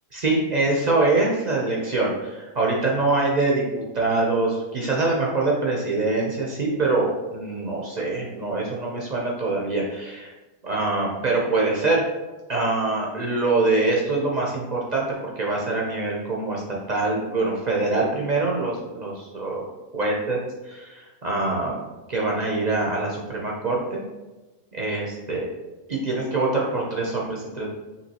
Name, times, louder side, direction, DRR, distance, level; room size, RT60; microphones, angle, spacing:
voice 1, 0.1-10.3 10.6-12.0 12.5-16.6 16.9-19.6 19.9-20.4 20.7-21.8 22.1-24.0 24.7-25.5 25.9-27.7, right 3 dB, 60° right, -3 dB, 0.4 m, -24 dB
5.7 x 3.0 x 2.9 m, 1.1 s
omnidirectional pair, 1.6 m